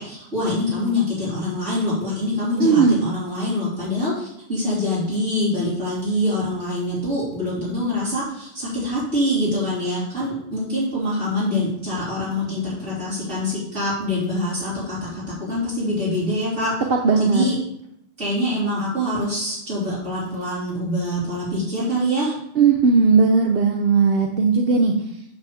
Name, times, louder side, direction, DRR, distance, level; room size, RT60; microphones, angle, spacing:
voice 1, 0.0-16.7 17.2-17.6 18.2-22.4, left 1 dB, 85° right, -10 dB, 3.9 m, -25 dB
voice 2, 2.6-3.0 17.0-17.5 22.6-24.9, right 5 dB, 60° right, 2 dB, 0.9 m, -17 dB
9.0 x 3.5 x 6.9 m, 0.75 s
omnidirectional pair, 1.2 m